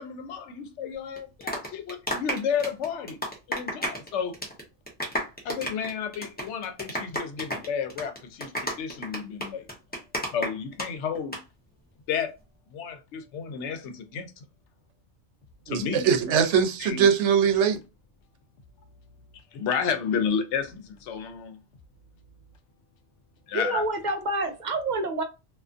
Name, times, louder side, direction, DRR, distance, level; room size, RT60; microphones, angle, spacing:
voice 1, 0.0-3.2 3.5-4.4 5.4-9.7 10.3-11.4 12.1-12.3 12.7-14.3 15.7-16.0 16.8-17.1 19.5-21.6 23.5-23.8, left 7 dB, 85° left, 0.9 m, -31 dB
sound 1, 1.2-4.1 4.3-4.6 4.9-10.9 11.2-11.4, equal, 10° left, 0.6 m, -31 dB
voice 2, 15.7-17.8, right 7 dB, 90° right, 0.9 m, -22 dB
voice 3, 23.5-25.2, right 2 dB, 55° right, 0.5 m, -28 dB
2.4 x 2.4 x 2.4 m
omnidirectional pair, 1.1 m